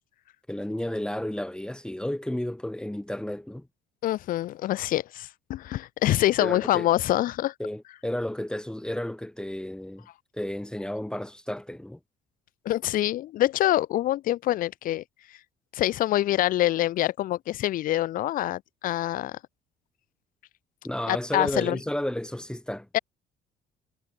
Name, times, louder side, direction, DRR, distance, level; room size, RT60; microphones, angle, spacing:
voice 1, 0.5-3.7 6.4-6.9 7.6-10.1 10.3-12.0 20.8-22.9, left 1 dB, 5° left, 2.2 m, -32 dB
voice 2, 4.0-7.5 12.7-15.0 15.7-19.4 21.1-21.8 22.9-23.0, left 14 dB, 55° left, 0.4 m, -25 dB
cardioid pair, 110°, 17 cm